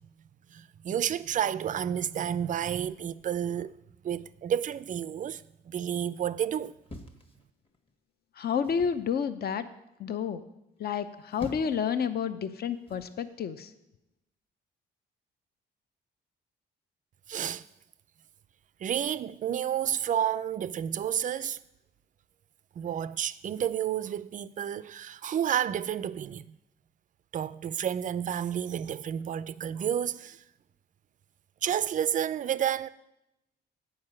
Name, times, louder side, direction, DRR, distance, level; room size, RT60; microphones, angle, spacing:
voice 1, 0.5-3.8 4.0-6.7 17.3-17.7 18.8-21.6 22.8-26.6 27.3-30.4 31.6-32.9, right 9 dB, 40° right, 0.4 m, -30 dB
sound 1, 6.9-7.9 8.6-9.0 11.0-11.9 12.9-13.2, left 2 dB, 30° left, 1.3 m, -45 dB
voice 2, 8.4-9.7 10.0-10.4 10.8-13.7, left 7 dB, 55° left, 0.7 m, -30 dB
8.7 x 4.9 x 7.5 m
cardioid pair, 90°, 20 cm